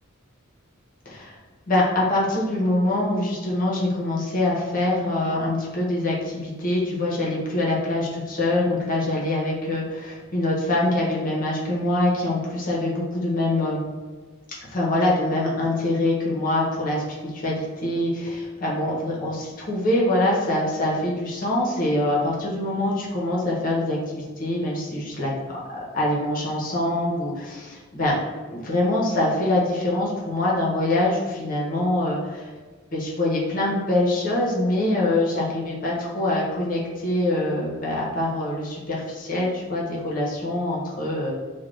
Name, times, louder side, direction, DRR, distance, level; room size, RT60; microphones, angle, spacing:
voice 1, 1.1-1.4 1.7-13.8 14.7-25.3 25.9-28.1 28.5-32.5 32.9-41.3, left 1 dB, 40° left, -4 dB, 0.7 m, -24 dB
2.5 x 2.2 x 3.2 m, 1.4 s
head